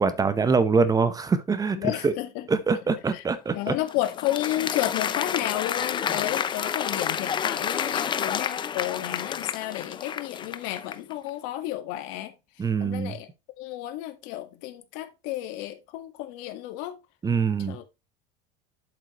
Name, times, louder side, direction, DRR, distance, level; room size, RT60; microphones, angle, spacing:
voice 1, 0.0-2.1 2.5-3.7 12.6-13.1 17.2-17.8, right 5 dB, 20° right, 0.8 m, -24 dB
voice 2, 1.8-2.5 3.1-3.2 3.5-13.3 13.6-17.0 17.7-17.8, left 14 dB, 70° left, 1.6 m, -32 dB
Applause, 3.5-11.1, left 8 dB, 25° left, 0.5 m, -30 dB
7.9 x 7.7 x 3.0 m
supercardioid pair, 130°, 19 cm